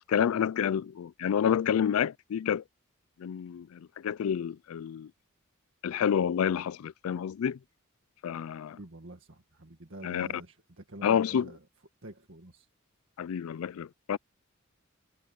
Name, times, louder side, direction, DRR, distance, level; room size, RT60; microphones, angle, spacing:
voice 1, 0.1-2.6 3.2-5.1 5.8-7.6 8.2-8.8 10.0-10.3 11.0-11.5 13.2-14.2, left 8 dB, 85° left, 0.4 m, -29 dB
voice 2, 8.7-11.7 12.0-12.7, right 1 dB, 65° right, 2.0 m, -47 dB
head